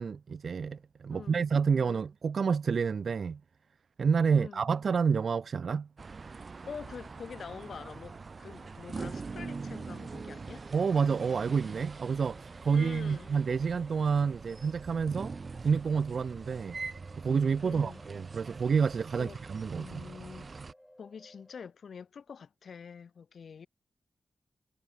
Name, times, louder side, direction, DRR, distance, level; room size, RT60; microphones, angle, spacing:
voice 1, 0.0-3.4 4.0-5.9 10.7-15.3 15.6-16.8 17.2-20.0, right 6 dB, 55° right, 0.4 m, -29 dB
voice 2, 1.1-1.5 1.7-2.0 4.3-4.7 6.7-10.7 12.7-13.4 17.6-18.0 19.2-19.4 19.8-20.5 21.0-23.7, left 6 dB, 65° left, 3.9 m, -46 dB
sound 1, 6.0-20.7, right 4 dB, 40° right, 1.5 m, -44 dB
sound 2, 11.3-21.6, left 1 dB, 5° left, 3.7 m, -59 dB
wide cardioid pair, 145°, 0 cm